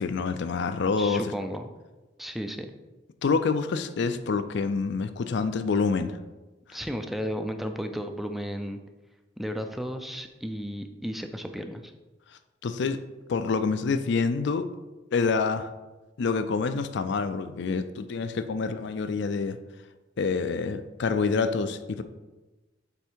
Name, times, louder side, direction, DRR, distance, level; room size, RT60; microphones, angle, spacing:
voice 1, 0.0-1.2 3.2-6.2 12.6-13.0 13.3-14.7 15.1-15.7 16.2-19.6 20.2-22.0, left 4 dB, 65° left, 11 dB, 0.4 m, -27 dB
voice 2, 1.0-1.6 2.2-2.7 6.7-8.8 9.4-11.9, equal, ahead, 6 dB, 0.4 m, -34 dB
7.9 x 3.5 x 4.5 m, 1.1 s
head